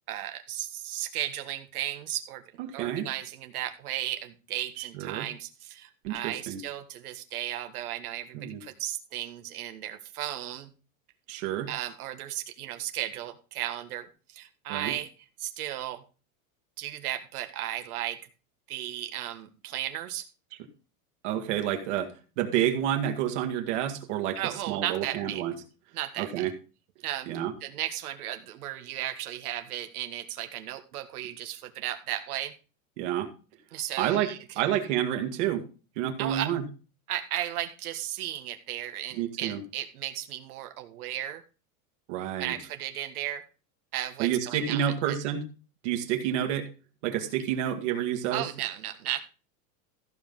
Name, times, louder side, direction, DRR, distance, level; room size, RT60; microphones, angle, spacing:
voice 1, 0.1-2.4 2.7-10.7 11.7-15.1 15.4-16.0 16.8-18.2 18.7-20.3 24.4-25.4 25.9-26.5 27.0-27.3 27.6-32.5 33.7-34.4 36.2-36.5 37.1-41.4 42.4-43.4 43.9-45.2 48.3-49.2, right 12 dB, 85° right, 7 dB, 1.8 m, -35 dB
voice 2, 2.7-3.1 4.8-5.3 6.0-6.6 8.3-8.6 11.3-11.7 14.7-14.9 21.2-25.5 26.2-26.5 27.3-27.5 33.0-33.3 34.0-34.3 34.6-35.6 36.0-36.6 39.2-39.6 42.1-42.5 44.2-45.4 45.8-46.7 47.0-48.4, right 10 dB, 55° right, 5 dB, 2.0 m, -29 dB
14.5 x 5.3 x 5.5 m, 0.34 s
supercardioid pair, 170°, 43 cm